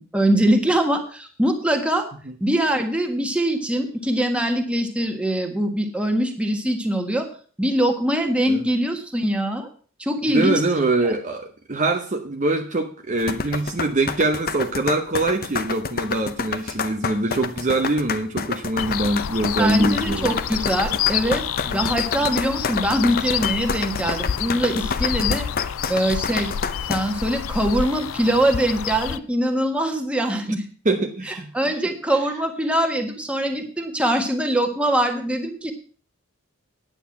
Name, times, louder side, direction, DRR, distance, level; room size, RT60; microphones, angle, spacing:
voice 1, 0.0-2.1 2.4-7.3 7.6-9.7 10.0-10.6 11.0-11.1 19.6-21.4 21.7-25.5 25.9-26.5 26.9-30.6 31.3-35.7, right 1 dB, 5° right, 4 dB, 1.6 m, -23 dB
voice 2, 10.2-20.3 21.7-21.9 30.8-31.5, right 2 dB, 35° right, 4 dB, 0.9 m, -23 dB
sound 1, 13.2-27.0, left 5 dB, 45° left, 0.8 m, -28 dB
sound 2, 18.8-29.2, left 9 dB, 75° left, 0.5 m, -28 dB
9.5 x 9.1 x 5.8 m, 0.42 s
head